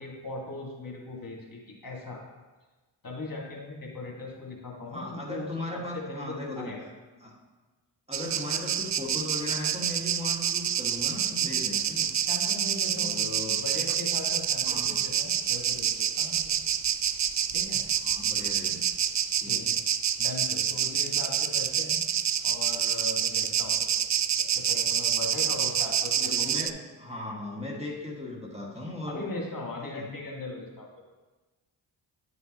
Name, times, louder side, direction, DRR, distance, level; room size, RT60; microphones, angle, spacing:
voice 1, 0.0-2.3 3.0-6.9 12.3-13.3 13.6-15.9 16.2-16.5 17.5-17.8 19.4-19.8 20.2-22.0 22.4-23.9 24.4-26.6 29.0-30.9, left 2 dB, 40° left, -2 dB, 1.9 m, -39 dB
voice 2, 4.9-6.8 7.2-7.4 8.1-12.1 12.9-13.6 14.6-15.1 18.0-18.8 19.4-19.7 26.1-29.3 29.8-30.1, left 1 dB, 10° right, -3 dB, 1.8 m, -37 dB
sound 1, 8.1-26.7, right 9 dB, 40° right, 0.4 m, -28 dB
9.8 x 5.5 x 3.0 m, 1.2 s
supercardioid pair, 45°, 49 cm